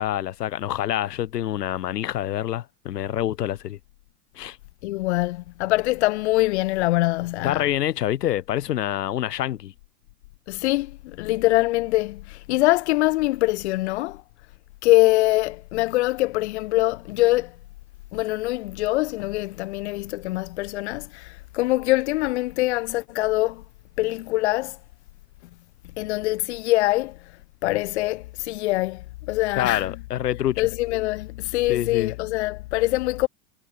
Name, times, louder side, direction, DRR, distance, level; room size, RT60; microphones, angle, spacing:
voice 1, 0.0-3.8 4.4-4.6 7.4-9.7 29.5-30.7 31.7-32.1, left 12 dB, 80° left, 7.1 m, -26 dB
voice 2, 4.8-7.7 10.5-14.2 14.8-17.6 18.1-23.6 24.0-24.8 26.0-27.2 27.6-29.9 30.6-33.3, left 19 dB, 45° left, 3.1 m, -23 dB
supercardioid pair, 180°, 47 cm